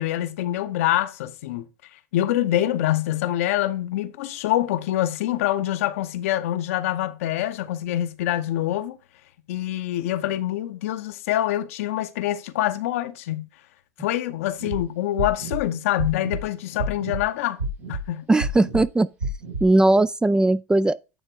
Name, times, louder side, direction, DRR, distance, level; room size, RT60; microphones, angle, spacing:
voice 1, 0.0-1.7 2.1-9.0 9.5-13.5 14.0-17.6 17.9-18.3, left 13 dB, 70° left, 0.8 m, -25 dB
sound 1, 14.6-14.8 15.2-15.6 16.0-16.4 16.8-17.2 17.6-18.0 18.4-18.8 19.2-19.6, right 2 dB, 85° right, 5.1 m, -29 dB
voice 2, 18.3-19.1 19.6-21.2, right 2 dB, 10° right, 0.3 m, -19 dB
9.1 x 3.6 x 4.5 m
hypercardioid pair, 90°, 8 cm